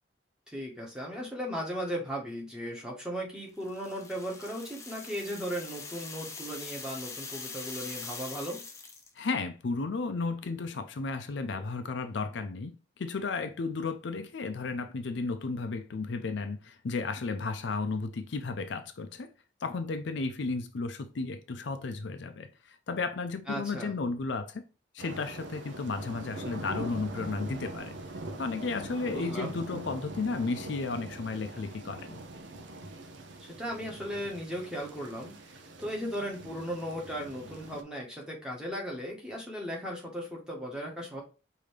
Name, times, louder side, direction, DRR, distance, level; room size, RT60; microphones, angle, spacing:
voice 1, 0.5-8.6 23.5-23.9 29.1-29.6 33.4-41.2, equal, 5° right, 1.1 m, -37 dB
sound 1, 3.6-9.2, left 4 dB, 15° left, 0.5 m, -43 dB
voice 2, 9.2-19.3 19.6-24.6 24.9-28.0 28.4-32.2, left 3 dB, 70° left, 0.5 m, -33 dB
sound 2, 25.0-37.8, right 2 dB, 70° right, 0.6 m, -43 dB
5.0 x 2.7 x 3.2 m
head